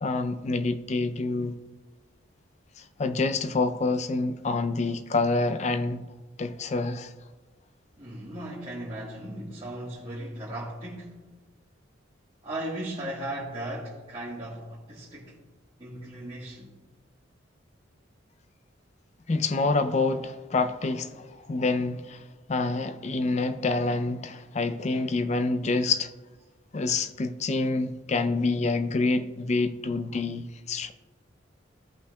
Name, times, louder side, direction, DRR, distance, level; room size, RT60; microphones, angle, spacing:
voice 1, 0.0-1.6 2.8-6.1 6.4-7.1 19.3-26.1 26.7-30.9, left 3 dB, 35° left, 0.4 m, -27 dB
voice 2, 8.0-11.3 12.4-15.4 15.8-16.8, right 1 dB, 25° right, 1.3 m, -37 dB
15.0 x 5.6 x 2.3 m
head